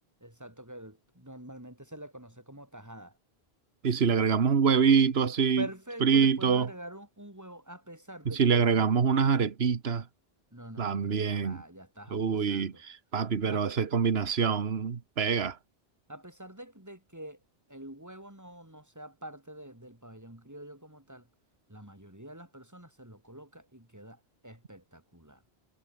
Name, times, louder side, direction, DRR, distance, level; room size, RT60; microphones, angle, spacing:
voice 1, 0.2-3.2 5.6-8.8 10.5-12.8 13.5-13.6 16.1-17.4 17.7-21.3 21.7-25.4, right 1 dB, 15° right, 4.2 m, -46 dB
voice 2, 3.8-5.6 6.0-6.7 8.3-10.0 10.8-11.6 12.1-15.6, right 6 dB, 80° right, 1.6 m, -25 dB
omnidirectional pair, 1.0 m